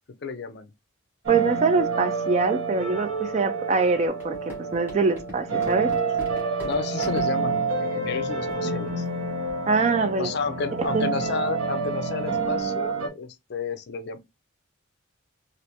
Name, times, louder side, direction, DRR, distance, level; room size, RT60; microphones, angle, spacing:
voice 1, 0.2-0.7 6.6-9.1 10.2-14.2, left 4 dB, 50° left, 0.4 m, -31 dB
voice 2, 1.3-5.9 9.7-10.3 10.9-11.1, right 4 dB, 30° right, 0.3 m, -24 dB
sound 1, 1.3-13.1, right 4 dB, 85° right, 0.9 m, -28 dB
sound 2, 4.2-7.3 8.0-8.2 8.5-8.6 8.9-9.1 9.5-9.7, left 2 dB, 10° right, 1.1 m, -40 dB
3.3 x 2.5 x 2.8 m
head